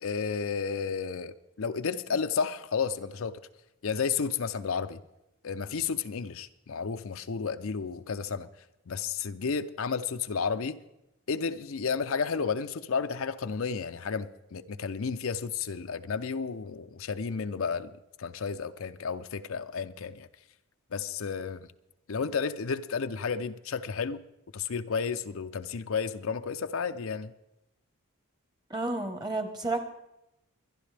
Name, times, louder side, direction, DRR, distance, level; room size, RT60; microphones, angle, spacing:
voice 1, 0.0-3.3 3.8-5.0 5.4-8.5 8.9-10.8 11.3-17.9 18.2-20.3 20.9-21.7 22.1-24.2 24.5-27.3, left 5 dB, 65° left, 0.5 m, -32 dB
voice 2, 28.7-29.8, right 2 dB, 20° right, 1.1 m, -31 dB
24.0 x 11.0 x 3.4 m
head